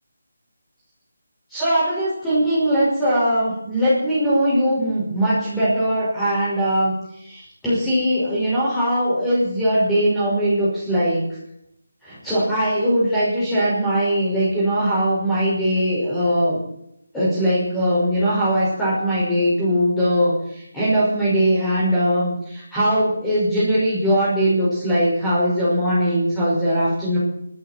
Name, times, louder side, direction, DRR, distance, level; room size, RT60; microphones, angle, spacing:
voice 1, 1.5-11.2 12.0-16.6 17.1-27.2, equal, 5° left, -11 dB, 5.7 m, -20 dB
25.5 x 11.5 x 4.5 m, 0.74 s
figure-of-eight pair, 170°, 0 cm